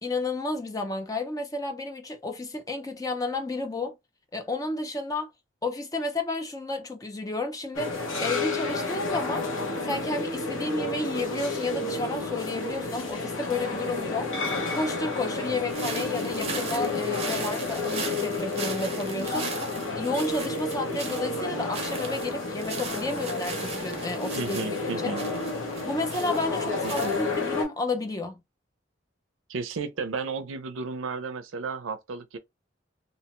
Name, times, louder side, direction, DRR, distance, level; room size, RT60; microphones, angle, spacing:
voice 1, 0.0-4.0 4.3-5.3 5.6-9.5 9.8-14.3 14.7-19.5 20.0-24.6 25.0-25.2 25.8-28.4, left 2 dB, 20° left, 0.4 m, -31 dB
sound 1, 7.7-27.6, left 3 dB, 85° left, 1.1 m, -31 dB
sound 2, 15.7-27.6, right 5 dB, 30° right, 0.6 m, -39 dB
voice 2, 24.4-25.2 26.8-27.1 29.5-32.4, right 4 dB, 80° right, 0.5 m, -33 dB
2.8 x 2.1 x 2.9 m
head